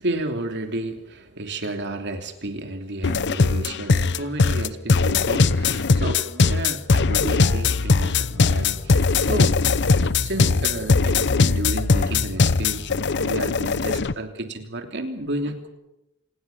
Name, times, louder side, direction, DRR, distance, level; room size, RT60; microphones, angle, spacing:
voice 1, 0.0-9.6 9.9-12.8 13.1-15.7, right 1 dB, 55° right, 6 dB, 3.1 m, -31 dB
sound 1, 3.0-14.1, left 4 dB, 55° left, 0.8 m, -20 dB
27.5 x 20.0 x 7.2 m, 0.91 s
head